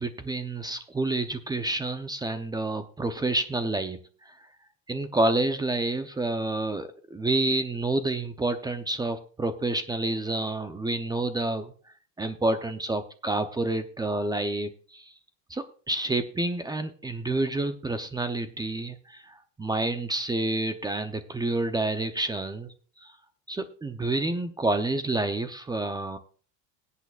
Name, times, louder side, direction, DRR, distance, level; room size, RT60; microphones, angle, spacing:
voice 1, 0.0-4.4 4.9-11.7 12.2-15.1 15.5-23.1 23.5-26.2, right 2 dB, 10° right, 10 dB, 0.6 m, -29 dB
20.5 x 8.4 x 2.4 m, 0.41 s
supercardioid pair, 120°, 35 cm